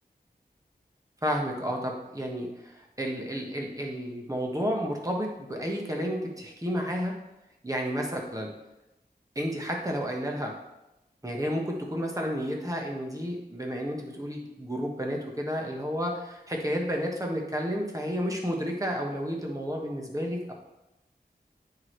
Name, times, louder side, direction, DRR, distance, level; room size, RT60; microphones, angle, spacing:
voice 1, 1.2-7.2 7.6-8.5 9.3-10.6 11.2-20.5, equal, 20° right, 0 dB, 1.4 m, -31 dB
9.6 x 4.8 x 3.2 m, 0.93 s
wide cardioid pair, 50°, 17 cm